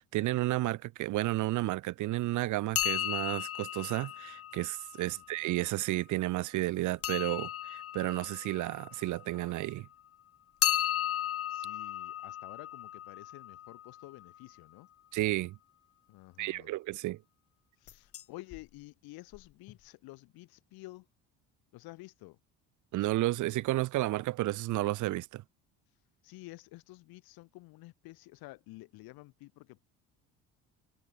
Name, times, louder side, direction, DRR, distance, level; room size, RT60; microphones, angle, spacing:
voice 1, 0.0-9.9 15.1-15.6 16.4-17.2 22.9-25.4, right 17 dB, 55° right, 0.5 m, -32 dB
sound 1, 2.7-5.5 7.0-9.7 10.6-14.4 17.9-18.2 18.5-18.6 19.3-19.4 19.7-19.8, left 11 dB, 40° left, 0.6 m, -35 dB
voice 2, 11.5-14.9 16.1-16.7 17.8-21.1 21.7-22.4 26.2-29.8, left 21 dB, 75° left, 1.5 m, -50 dB
supercardioid pair, 75°, 37 cm